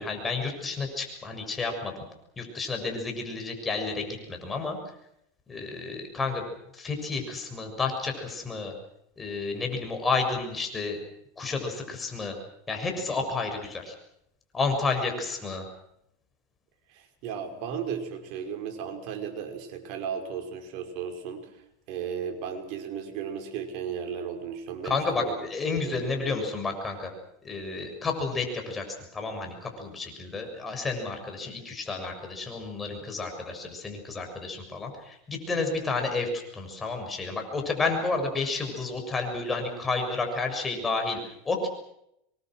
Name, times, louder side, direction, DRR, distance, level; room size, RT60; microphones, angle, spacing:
voice 1, 0.0-2.0 2.4-4.8 5.5-6.4 6.7-8.7 9.2-11.0 11.4-12.4 12.7-13.9 14.5-15.6 24.8-27.1 27.4-41.7, left 3 dB, 20° left, 4 dB, 7.0 m, -31 dB
voice 2, 16.9-21.5 21.9-25.5 25.8-26.4, right 7 dB, 55° right, 5 dB, 5.5 m, -35 dB
26.0 x 23.5 x 6.4 m, 0.79 s
supercardioid pair, 115°, 0 cm